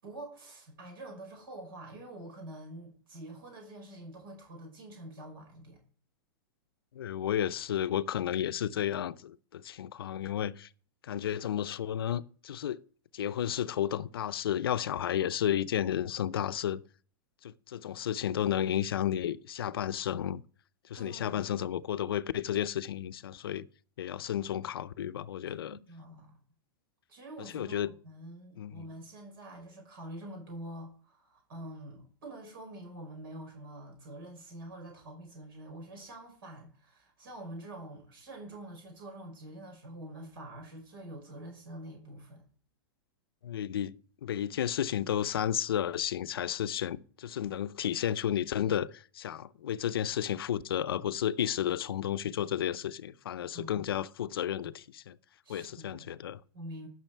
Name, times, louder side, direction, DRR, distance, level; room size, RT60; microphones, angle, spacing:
voice 1, 0.0-5.8 20.9-21.4 25.7-26.4 27.1-42.4 53.5-53.8 55.4-56.1 56.5-56.9, right 1 dB, 75° right, 5.5 m, -46 dB
voice 2, 6.9-10.7 11.0-12.8 13.1-16.8 17.4-20.4 20.9-23.7 24.0-25.8 27.4-27.9 28.6-28.9 43.4-43.9 44.2-55.2 55.5-56.4, left 10 dB, 85° left, 0.6 m, -32 dB
12.0 x 6.3 x 4.5 m
hypercardioid pair, 135°, 12 cm